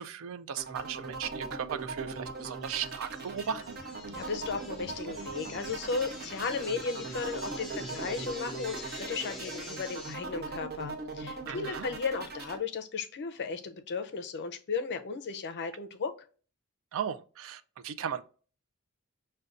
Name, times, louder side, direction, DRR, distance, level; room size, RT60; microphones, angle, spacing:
voice 1, 0.0-3.6 11.5-11.9 16.9-18.2, right 8 dB, 65° right, 0.3 m, -36 dB
sound 1, 0.6-12.6, right 3 dB, 45° right, 0.8 m, -40 dB
sound 2, 2.4-10.1, left 1 dB, ahead, 0.8 m, -45 dB
voice 2, 4.1-16.1, left 5 dB, 50° left, 0.5 m, -35 dB
6.5 x 2.2 x 2.4 m
head